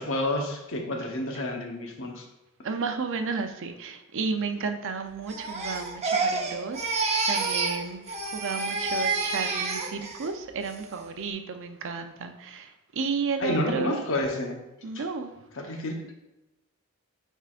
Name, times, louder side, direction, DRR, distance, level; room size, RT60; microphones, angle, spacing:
voice 1, 0.0-2.2 13.4-14.6 14.9-15.0 15.5-16.1, left 1 dB, 60° left, 2 dB, 1.0 m, -30 dB
voice 2, 2.6-14.0 14.8-15.3, right 5 dB, 60° right, 6 dB, 0.6 m, -32 dB
Crying sobbing, 5.3-7.8 8.1-10.3 10.7-11.1, right 3 dB, 30° right, 0.8 m, -29 dB
9.1 x 4.6 x 2.5 m, 0.99 s
head